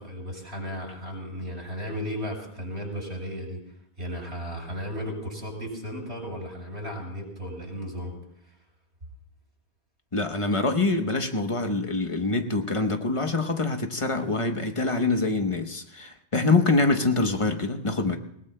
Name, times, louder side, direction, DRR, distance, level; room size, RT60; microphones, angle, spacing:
voice 1, 0.0-3.6 4.0-8.1, equal, 80° right, -1 dB, 6.1 m, -35 dB
voice 2, 10.1-18.2, left 3 dB, 30° left, 6 dB, 1.0 m, -25 dB
28.0 x 18.0 x 2.2 m, 0.74 s
omnidirectional pair, 1.1 m